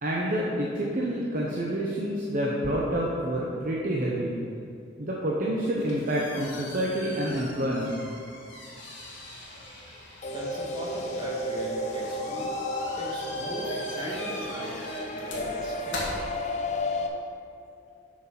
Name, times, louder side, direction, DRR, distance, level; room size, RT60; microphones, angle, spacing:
voice 1, 0.0-4.4 5.0-8.0, right 1 dB, 45° right, -4 dB, 0.8 m, -28 dB
sound 1, 5.5-17.0, left 1 dB, 75° left, 2.0 m, -42 dB
sound 2, 10.2-17.1, left 1 dB, 35° left, 0.6 m, -32 dB
voice 2, 10.3-12.5 12.8-14.8 15.1-16.2, equal, 25° right, -5 dB, 1.8 m, -38 dB
7.3 x 6.3 x 5.9 m, 2.4 s
head